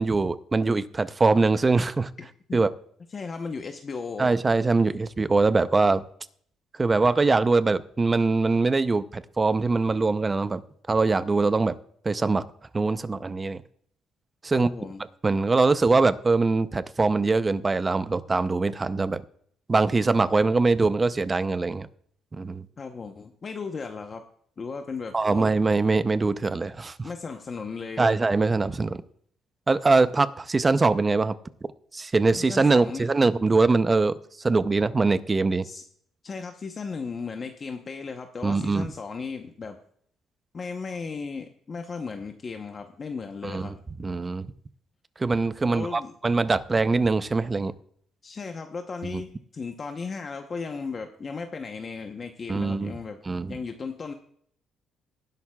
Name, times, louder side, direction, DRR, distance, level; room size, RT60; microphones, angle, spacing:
voice 1, 0.0-2.1 2.5-2.7 4.2-6.0 6.8-10.6 10.9-11.8 12.0-12.4 12.7-13.6 14.4-14.7 15.2-19.2 19.7-21.9 22.3-22.7 25.1-27.1 28.0-29.0 29.7-31.3 31.9-35.6 38.4-38.9 43.4-43.7 44.0-44.5 45.2-47.7 52.5-52.9 53.3-53.6, right 3 dB, 20° right, 14 dB, 0.5 m, -23 dB
voice 2, 3.1-4.3 14.5-15.0 22.8-24.2 24.6-25.5 27.0-28.2 32.3-33.1 35.6-35.8 36.2-39.8 40.5-43.7 45.7-46.1 48.2-53.2 53.5-54.1, left 4 dB, 30° left, 5 dB, 0.8 m, -36 dB
19.0 x 11.0 x 2.3 m, 0.63 s
cardioid pair, 130°, 0 cm